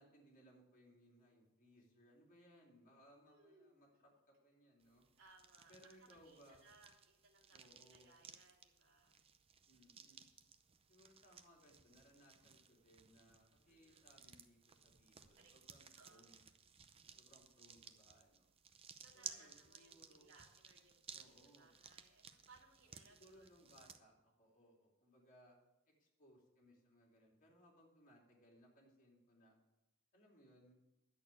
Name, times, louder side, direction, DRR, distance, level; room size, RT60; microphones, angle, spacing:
voice 1, 0.0-5.1 5.7-6.6 7.5-8.1 9.7-10.2 10.9-16.4 17.1-18.5 19.1-20.3 21.1-21.7 23.1-25.6 25.9-29.6 30.1-30.7, equal, 40° left, -2 dB, 2.9 m, -67 dB
voice 2, 3.3-4.0 5.2-9.2 13.7-14.0 15.4-15.5 15.9-16.3 17.2-17.4 18.9-23.6, right 3 dB, 70° right, -1 dB, 2.5 m, -67 dB
sound 1, 4.8-24.0, right 7 dB, 30° right, 0.7 m, -59 dB
10.5 x 6.5 x 8.4 m, 0.97 s
head